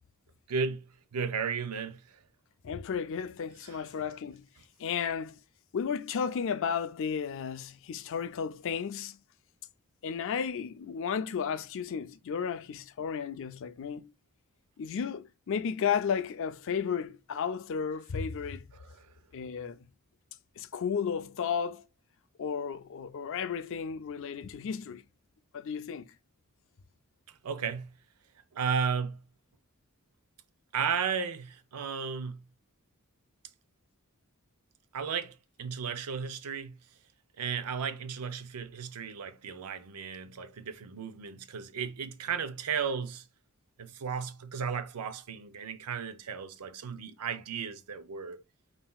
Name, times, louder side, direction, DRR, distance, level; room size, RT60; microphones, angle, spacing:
voice 1, 0.5-0.9 1.1-2.2 3.6-3.8 18.7-19.1 27.4-27.9 28.5-29.2 30.7-32.4 34.9-36.8 37.4-43.2 43.8-48.4, right 6 dB, 90° right, 0.5 m, -34 dB
voice 2, 2.6-4.5 4.8-5.4 5.7-9.2 10.0-14.1 14.8-18.7 19.3-19.9 20.6-21.8 22.4-25.0 25.5-26.1, left 7 dB, 60° left, 0.4 m, -33 dB
5.5 x 2.6 x 2.3 m
head